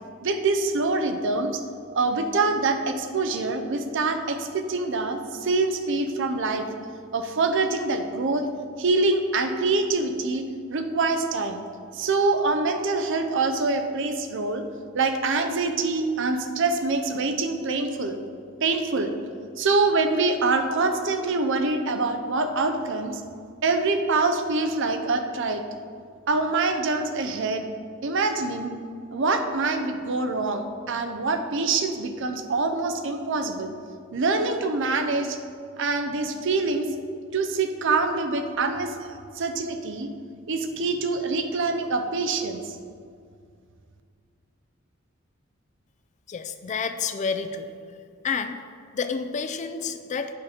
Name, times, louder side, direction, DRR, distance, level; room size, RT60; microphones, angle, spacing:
voice 1, 0.2-1.6 1.9-6.6 7.1-8.5 8.8-10.4 10.7-11.6 11.9-14.6 14.9-18.2 18.6-19.1 19.6-23.2 23.6-25.6 26.3-27.7 28.0-28.7 29.1-33.7 34.1-35.4 35.8-36.9 37.3-40.1 40.5-42.8, right 3 dB, 65° right, 7 dB, 0.6 m, -25 dB
voice 2, 46.3-47.7 48.2-48.6 48.9-50.3, left 5 dB, 35° left, 9 dB, 0.4 m, -29 dB
8.5 x 5.0 x 4.3 m, 2.2 s
head